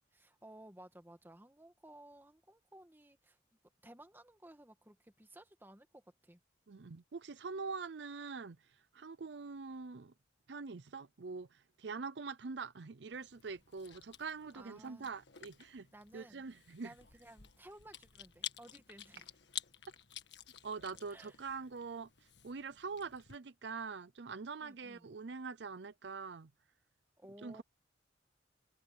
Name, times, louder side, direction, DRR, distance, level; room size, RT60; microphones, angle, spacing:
voice 1, 0.1-3.4 3.8-6.4 14.4-15.1 15.9-16.4 16.8-19.3 21.1-21.4 24.6-25.1 27.2-27.6, right 1 dB, 10° right, 1.8 m, -57 dB
voice 2, 6.7-8.6 8.9-10.1 10.5-15.9 16.1-16.9 20.6-22.1 22.4-26.5 27.4-27.6, right 4 dB, 65° right, 0.6 m, -44 dB
Chewing mastication, 13.1-23.4, left 11 dB, 65° left, 1.6 m, -51 dB
head